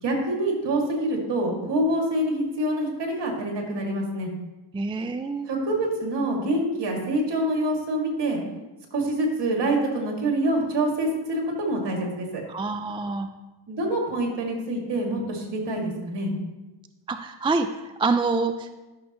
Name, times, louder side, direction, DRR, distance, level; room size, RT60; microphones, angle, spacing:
voice 1, 0.0-4.3 5.5-8.4 8.9-12.4 13.7-16.3, right 1 dB, 55° right, 0 dB, 2.4 m, -26 dB
voice 2, 4.7-5.5 12.5-13.3 17.1-18.7, right 3 dB, 10° right, 8 dB, 0.3 m, -26 dB
12.0 x 6.3 x 3.0 m, 1.1 s
cardioid pair, 75°, 50 cm